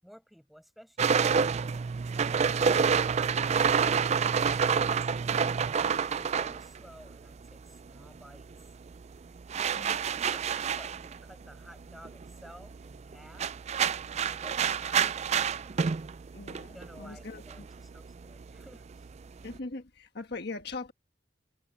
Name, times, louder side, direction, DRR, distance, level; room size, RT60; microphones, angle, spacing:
voice 1, 0.0-1.6 4.6-8.7 10.1-13.5 14.2-16.0 16.7-19.1, equal, ahead, 6.8 m, -54 dB
sound 1, 1.0-7.7 8.0-19.6, right 6 dB, 35° right, 0.4 m, -29 dB
voice 2, 16.3-17.6 19.4-20.9, left 3 dB, 65° left, 1.5 m, -41 dB
head